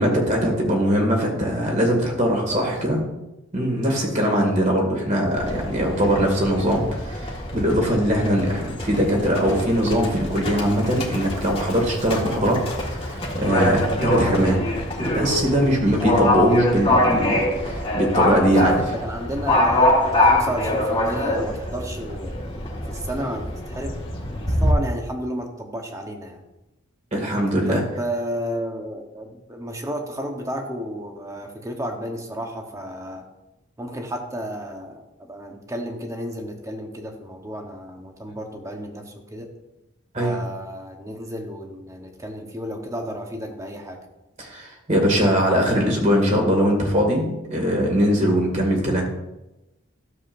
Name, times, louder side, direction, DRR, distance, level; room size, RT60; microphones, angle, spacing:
voice 1, 0.0-3.0 3.5-14.7 15.0-18.8 27.1-27.8 40.1-40.4 44.4-49.1, equal, 40° right, 1 dB, 2.1 m, -21 dB
voice 2, 4.0-4.3 18.3-19.9 20.3-22.5 22.9-24.0 24.6-26.4 27.7-33.2 33.8-35.0 35.3-39.5 40.1-44.0, equal, 15° right, 3 dB, 1.1 m, -32 dB
Livestock farm animals working animals, 5.4-24.7, left 1 dB, 30° left, 1.7 m, -24 dB
12.5 x 7.2 x 2.6 m, 0.95 s
head